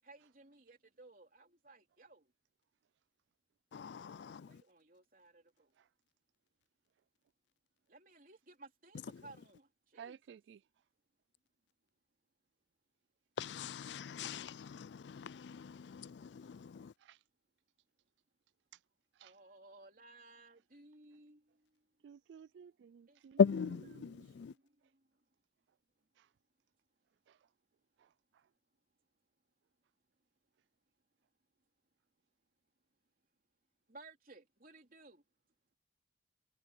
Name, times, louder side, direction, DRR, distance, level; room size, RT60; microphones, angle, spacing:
voice 1, 0.0-2.3 4.1-5.7 7.9-10.2 19.2-21.8 23.1-23.2 24.1-25.1 33.9-35.2, right 2 dB, 50° right, 3.6 m, -59 dB
voice 2, 3.7-4.6 9.1-9.2 13.4-16.9 23.4-24.5, left 6 dB, 80° left, 0.4 m, -37 dB
voice 3, 10.0-10.6 17.0-17.2 19.2-19.3 22.0-23.4 23.9-24.3, right 7 dB, 85° right, 0.3 m, -54 dB
head